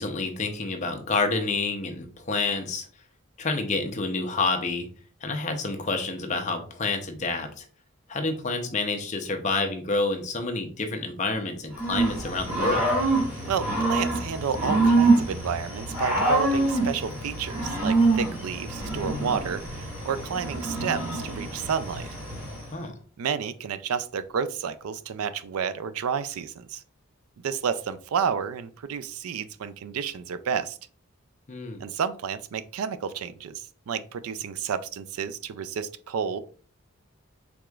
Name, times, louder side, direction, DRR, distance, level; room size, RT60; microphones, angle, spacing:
voice 1, 0.0-2.9 3.4-4.9 5.2-7.6 8.1-12.9 22.7-23.0 31.5-31.8, left 3 dB, 35° left, 5 dB, 0.6 m, -28 dB
Growling / Cricket, 11.7-22.7, right 2 dB, 10° right, 1.9 m, -25 dB
voice 2, 13.5-22.1 23.2-26.8 27.4-30.8 31.8-36.4, right 7 dB, 85° right, 13 dB, 0.4 m, -31 dB
4.8 x 3.5 x 2.3 m, 0.43 s
head